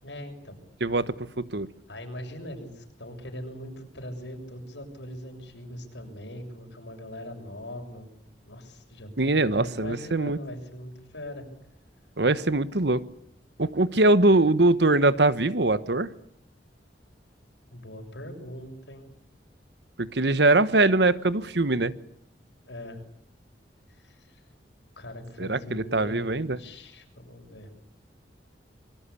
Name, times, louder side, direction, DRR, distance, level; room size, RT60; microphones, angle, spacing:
voice 1, 0.0-0.6 1.9-8.1 8.5-11.5 17.7-19.1 22.7-23.0 23.9-24.4 25.0-27.7, left 1 dB, 90° left, 4 dB, 7.0 m, -41 dB
voice 2, 0.8-1.7 9.2-10.4 12.2-13.0 13.6-16.1 20.0-21.9 25.4-26.6, right 2 dB, 70° right, 14 dB, 1.2 m, -22 dB
25.5 x 23.5 x 8.5 m, 0.72 s
head